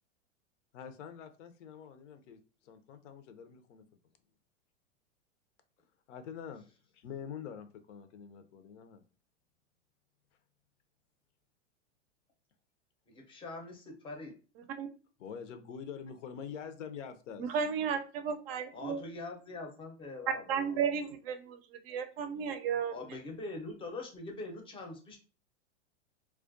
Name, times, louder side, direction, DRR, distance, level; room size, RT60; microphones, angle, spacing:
voice 1, 0.7-3.8 6.1-6.6 6.9-9.0 15.2-17.5, left 7 dB, 80° left, 9 dB, 0.6 m, -45 dB
voice 2, 13.1-14.3 18.7-20.8 22.9-25.2, left 2 dB, 15° left, 2 dB, 0.5 m, -43 dB
voice 3, 17.4-19.0 20.5-21.6 21.8-22.9, right 7 dB, 55° right, 8 dB, 0.5 m, -33 dB
2.3 x 2.2 x 2.5 m, 0.36 s
hypercardioid pair, 125°, 36 cm